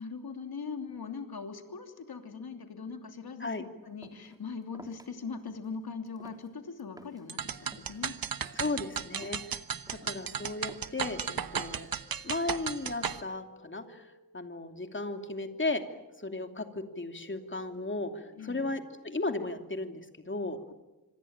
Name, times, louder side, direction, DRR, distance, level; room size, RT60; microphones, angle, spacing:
voice 1, 0.0-3.5 3.8-8.2 9.7-10.1 18.4-18.7, left 5 dB, 90° left, 6 dB, 3.0 m, -41 dB
sound 1, 4.0-4.4 4.7-5.1 5.5-5.7 6.1-7.3 7.6-8.0 8.4-8.8 9.2-9.5 9.9-10.2 10.7-11.1 11.6-12.0, right 1 dB, 10° right, 3.2 m, -53 dB
sound 2, 7.3-13.2, right 7 dB, 70° right, 1.2 m, -35 dB
voice 2, 8.6-9.4 10.0-11.9 12.2-15.8 16.2-20.6, left 2 dB, 30° left, 6 dB, 2.8 m, -35 dB
sound 3, 11.8-19.3, right 1 dB, 55° right, 5.8 m, -60 dB
26.0 x 25.5 x 8.9 m, 1.0 s
wide cardioid pair, 105°, 36 cm